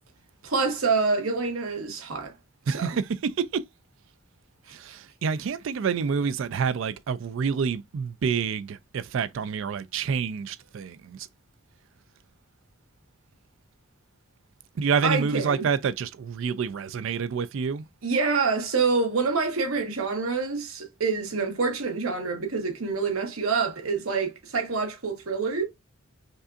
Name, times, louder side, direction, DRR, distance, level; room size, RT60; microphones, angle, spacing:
voice 1, 0.4-2.3 2.7-3.0 4.7-5.0 15.0-15.6 18.0-25.6, right 4 dB, 80° right, 1.1 m, -27 dB
voice 2, 2.7-3.6 4.7-11.3 14.8-17.8, right 6 dB, 60° right, 0.3 m, -28 dB
5.3 x 2.5 x 2.4 m
head